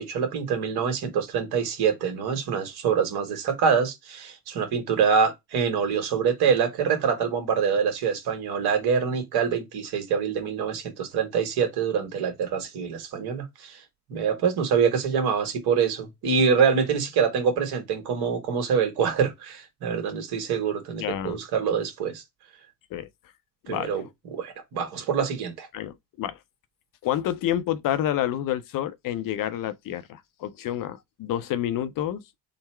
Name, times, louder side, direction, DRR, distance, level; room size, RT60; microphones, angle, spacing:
voice 1, 0.0-13.8 14.1-22.2 23.7-24.0 24.3-25.7, right 6 dB, 60° right, 1.5 m, -25 dB
voice 2, 21.0-21.4 22.9-23.1 23.7-24.1 25.7-26.4 27.0-32.2, left 11 dB, 50° left, 0.7 m, -29 dB
3.8 x 2.0 x 4.3 m
hypercardioid pair, 60°, 43 cm